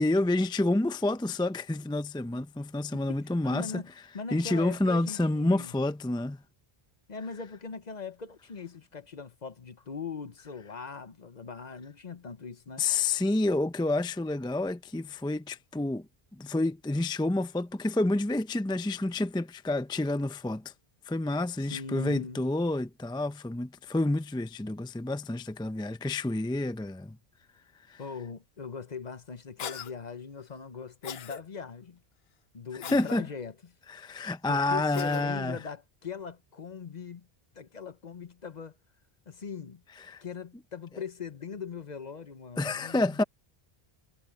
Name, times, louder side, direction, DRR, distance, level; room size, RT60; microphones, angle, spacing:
voice 1, 0.0-3.8 4.3-6.4 12.8-20.7 21.1-27.2 27.9-28.0 32.9-33.2 33.9-35.6 40.0-40.2 42.6-43.2, left 2 dB, 5° left, 0.5 m, -29 dB
voice 2, 3.1-5.8 7.1-12.9 21.6-22.5 28.0-32.0 32.5-33.5 34.5-37.3 37.5-38.8 39.3-39.8 40.2-43.2, left 5 dB, 45° left, 0.9 m, -40 dB
Cough, 29.6-29.9 31.0-31.4 32.8-33.2 34.9-35.3, left 9 dB, 80° left, 1.0 m, -39 dB
omnidirectional pair, 1.0 m